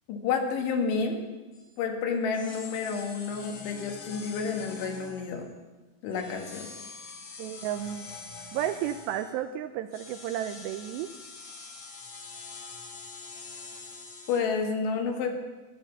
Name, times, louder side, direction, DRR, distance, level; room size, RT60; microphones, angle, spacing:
voice 1, 0.1-1.2 1.8-5.5 6.0-6.7 14.3-15.3, left 5 dB, 80° left, 3 dB, 4.0 m, -30 dB
sound 1, 1.5-1.7 2.3-5.5 6.1-9.4 9.9-14.4, left 4 dB, 55° left, 2.6 m, -45 dB
voice 2, 7.4-8.1 8.5-11.1, right 11 dB, 85° right, 8 dB, 2.5 m, -32 dB
14.0 x 12.0 x 7.1 m, 1.2 s
omnidirectional pair, 5.4 m